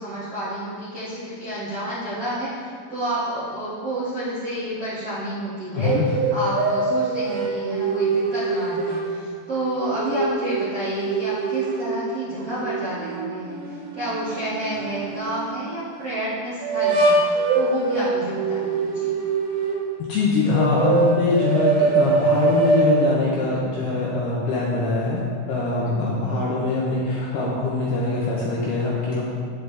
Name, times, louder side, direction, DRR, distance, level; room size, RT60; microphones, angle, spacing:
voice 1, 0.0-19.1 25.8-26.3, right 1 dB, 60° right, -12 dB, 1.6 m, -30 dB
voice 2, 5.7-6.0 20.0-25.2 25.5-29.3, left 3 dB, 75° left, -5 dB, 2.4 m, -23 dB
sound 1, 5.8-9.1 9.6-11.9 12.4-15.5 16.6-19.9 20.5-22.9, right 3 dB, 75° right, 3.7 m, -23 dB
9.5 x 8.2 x 3.3 m, 2.1 s
omnidirectional pair, 5.6 m